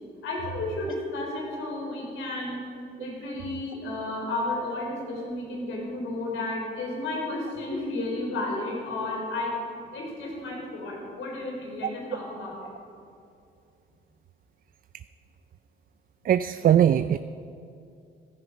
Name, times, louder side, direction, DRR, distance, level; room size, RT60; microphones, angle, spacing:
voice 1, 0.2-2.6 3.0-9.6 9.9-12.6, left 2 dB, 85° left, -1 dB, 4.2 m, -32 dB
voice 2, 16.2-17.2, right 10 dB, 45° right, 12 dB, 0.4 m, -20 dB
14.5 x 13.0 x 5.2 m, 2.5 s
cardioid pair, 90°, 20 cm